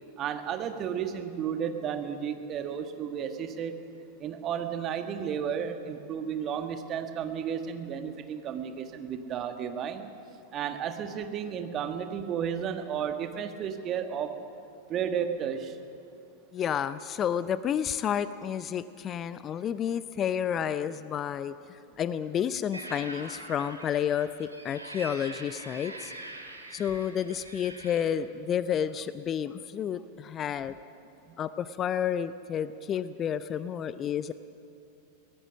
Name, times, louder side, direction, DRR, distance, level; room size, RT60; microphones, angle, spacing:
voice 1, 0.2-3.8 4.2-10.1 10.5-14.4 14.9-15.8 31.3-31.4, right 8 dB, 30° right, 7 dB, 1.5 m, -33 dB
voice 2, 16.5-26.1 26.7-30.8 31.4-34.3, left 9 dB, 30° left, 15 dB, 0.5 m, -30 dB
sound 1, 22.7-28.1, right 2 dB, 85° right, 2.2 m, -44 dB
22.5 x 18.5 x 6.3 m, 2.6 s
figure-of-eight pair, 90°, 0 cm